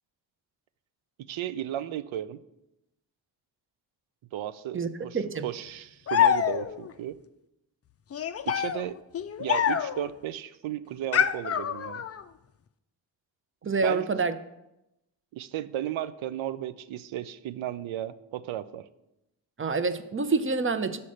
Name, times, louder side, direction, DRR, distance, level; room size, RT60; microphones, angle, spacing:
voice 1, 1.3-2.4 4.3-5.2 5.4-7.2 8.4-9.0 9.4-12.0 13.6-14.0 15.3-18.9, right 12 dB, 75° right, 15 dB, 0.5 m, -34 dB
voice 2, 5.1-5.5 13.6-14.3 19.6-21.0, right 4 dB, 25° right, 11 dB, 0.6 m, -27 dB
sound 1, 6.1-6.9 8.1-10.1 11.1-12.2, left 8 dB, 35° left, 0.4 m, -26 dB
6.4 x 4.3 x 6.3 m, 0.89 s
supercardioid pair, 40°, 48 cm